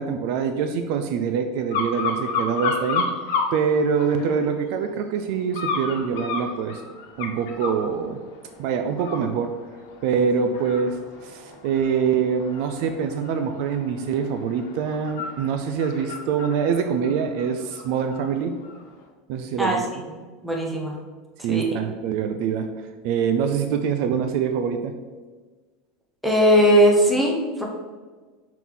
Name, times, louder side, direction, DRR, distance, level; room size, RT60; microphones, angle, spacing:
voice 1, 0.0-3.1 3.5-6.8 7.2-8.2 8.6-9.6 10.0-18.5 19.3-19.8 21.4-22.7 23.0-24.9, right 6 dB, 50° right, 7 dB, 0.4 m, -24 dB
sound 1, 1.7-3.5 4.0-4.6 5.5-7.8 8.3-8.6 8.9-18.2 18.6-18.8, left 4 dB, 75° left, 1.2 m, -31 dB
voice 2, 20.4-20.9 21.5-21.8 26.2-27.6, equal, ahead, -2 dB, 0.9 m, -19 dB
5.4 x 4.6 x 3.8 m, 1.4 s
supercardioid pair, 175°, 0 cm